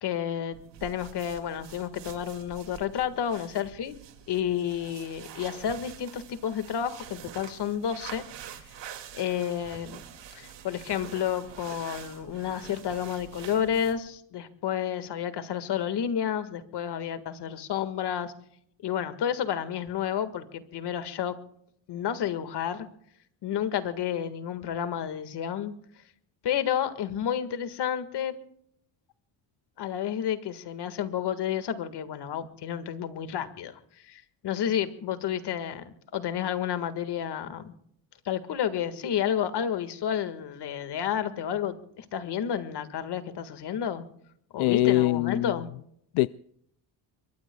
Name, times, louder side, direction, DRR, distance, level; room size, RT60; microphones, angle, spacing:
voice 1, 0.0-4.0 4.3-8.2 9.1-10.0 10.3-18.3 18.8-21.4 21.9-22.9 23.4-25.7 26.4-28.4 29.8-33.8 34.1-37.7 38.3-44.1 44.5-45.7, left 9 dB, 55° left, 1.8 m, -31 dB
sound 1, 0.5-14.1, right 9 dB, 60° right, 2.4 m, -46 dB
voice 2, 44.6-45.5 46.1-46.3, left 17 dB, 85° left, 0.5 m, -23 dB
26.5 x 23.0 x 2.3 m
cardioid pair, 140°, 47 cm